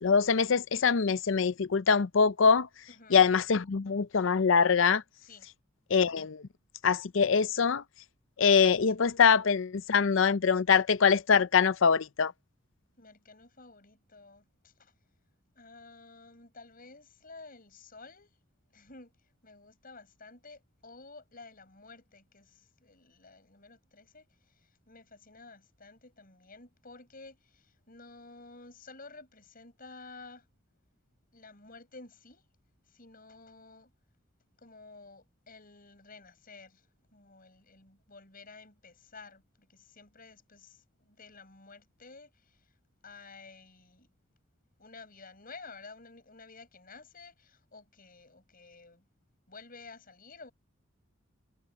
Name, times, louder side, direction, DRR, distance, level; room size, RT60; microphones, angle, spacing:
voice 1, 0.0-2.7 3.1-5.0 5.9-6.4 6.8-7.8 8.4-12.3, left 6 dB, 65° left, 0.5 m, -24 dB
voice 2, 2.9-3.3 5.2-5.5 13.0-14.9 15.5-18.4 18.7-30.5 31.3-32.4 32.9-33.9 34.6-42.8 43.0-44.1 44.8-49.0 49.5-50.5, left 3 dB, 45° left, 7.9 m, -52 dB
head